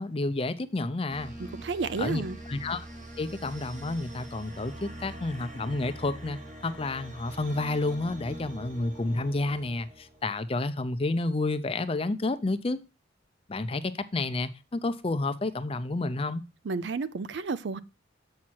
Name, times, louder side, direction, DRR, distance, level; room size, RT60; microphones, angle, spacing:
voice 1, 0.0-1.3 2.0-2.2 2.5-2.9 3.2-12.8 13.5-16.4, left 2 dB, 30° left, 0.5 m, -30 dB
sound 1, 1.1-10.5, right 1 dB, 40° right, 1.6 m, -44 dB
voice 2, 1.5-2.4 16.7-17.8, right 4 dB, 60° right, 0.4 m, -31 dB
7.3 x 5.9 x 4.6 m
head